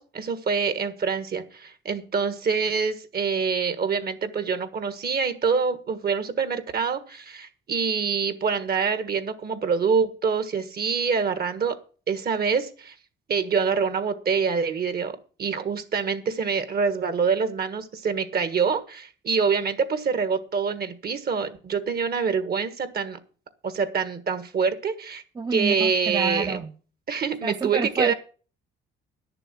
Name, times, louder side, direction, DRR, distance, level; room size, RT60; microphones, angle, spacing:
voice 1, 0.0-11.8 12.1-12.9 13.3-23.2 23.6-25.2 25.5-26.6 27.1-28.1, right 5 dB, 50° right, 1.5 m, -26 dB
voice 2, 25.4-26.7 27.4-28.1, right 4 dB, 20° right, 0.6 m, -28 dB
11.0 x 6.9 x 7.4 m
cardioid pair, 90°, 20 cm